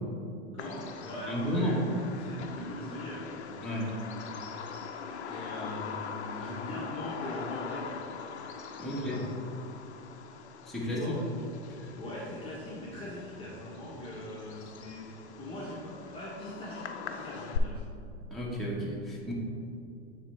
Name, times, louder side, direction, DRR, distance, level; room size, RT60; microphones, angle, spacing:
voice 1, 0.5-3.9 5.3-8.0 8.8-9.3 10.8-11.2 11.9-17.9, left 1 dB, 15° left, -7 dB, 1.2 m, -41 dB
Bird vocalization bird call bird song, 0.6-17.6, left 6 dB, 90° left, 0.6 m, -42 dB
voice 2, 1.3-1.8 3.6-3.9 8.8-9.3 10.7-11.2 18.3-19.3, equal, ahead, -6 dB, 1.4 m, -32 dB
10.0 x 3.5 x 3.5 m, 2.5 s
hypercardioid pair, 105°, 32 cm